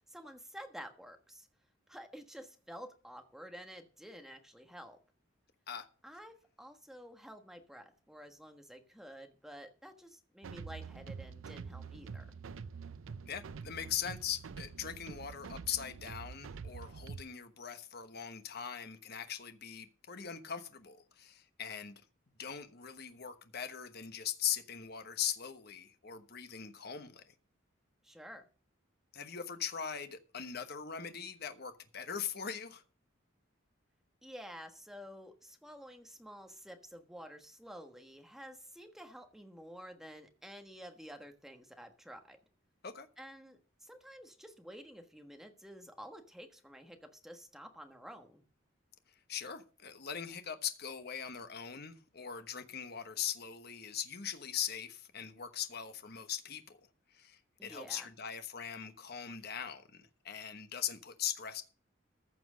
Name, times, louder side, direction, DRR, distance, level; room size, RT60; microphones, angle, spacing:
voice 1, 0.1-1.5 1.9-5.0 6.0-12.2 28.0-28.5 34.2-42.4 43.2-48.4 57.6-58.1, equal, ahead, 1.3 m, -50 dB
sound 1, 10.4-17.2, right 5 dB, 85° right, 0.5 m, -46 dB
voice 2, 13.2-22.0 22.4-27.3 29.1-32.8 42.8-43.1 49.3-56.8 57.1-61.6, left 8 dB, 50° left, 1.1 m, -40 dB
14.5 x 6.1 x 6.3 m
head